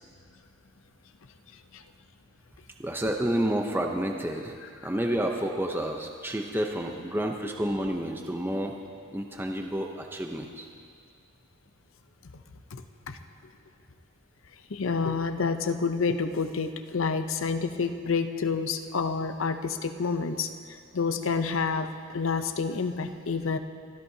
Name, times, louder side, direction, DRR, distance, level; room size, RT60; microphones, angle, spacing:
voice 1, 2.8-4.6 4.8-8.8 9.1-10.7, right 1 dB, 10° right, 2 dB, 0.7 m, -30 dB
voice 2, 12.7-13.2 14.7-20.5 20.9-23.6, left 5 dB, 70° left, 8 dB, 0.7 m, -29 dB
25.5 x 14.0 x 2.8 m, 2.2 s
head